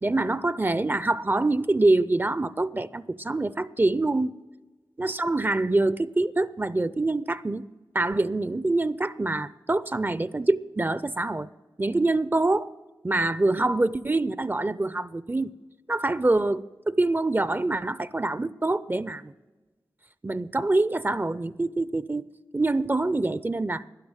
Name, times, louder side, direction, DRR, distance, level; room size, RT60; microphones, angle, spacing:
voice 1, 0.0-4.3 5.0-7.7 7.9-11.5 11.8-12.7 13.0-15.5 15.9-19.3 20.2-22.2 22.5-23.8, right 2 dB, 25° right, 0.5 m, -25 dB
12.5 x 10.5 x 8.8 m
wide cardioid pair, 55°, 8 cm